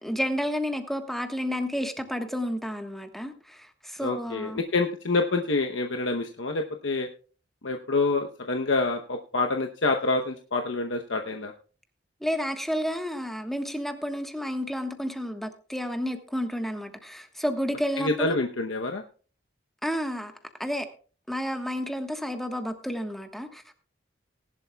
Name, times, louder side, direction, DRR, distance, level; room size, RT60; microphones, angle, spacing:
voice 1, 0.0-4.6 12.2-18.4 19.8-20.3 20.6-20.9 21.3-23.7, equal, ahead, 1.3 m, -31 dB
voice 2, 4.0-7.1 7.6-11.5 18.0-19.0, left 3 dB, 85° left, 0.9 m, -27 dB
19.0 x 11.5 x 2.3 m
head